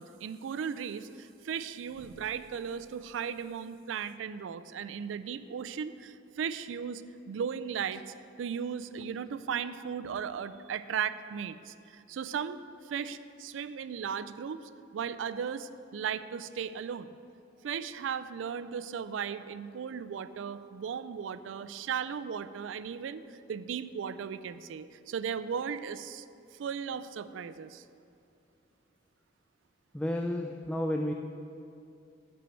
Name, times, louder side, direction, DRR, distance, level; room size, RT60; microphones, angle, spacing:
voice 1, 0.0-12.6 12.9-17.1 17.6-26.2 26.6-27.8, right 7 dB, 80° right, 13 dB, 0.3 m, -36 dB
voice 2, 29.9-31.1, left 1 dB, 5° left, 3 dB, 0.3 m, -31 dB
10.5 x 4.5 x 7.5 m, 2.6 s
head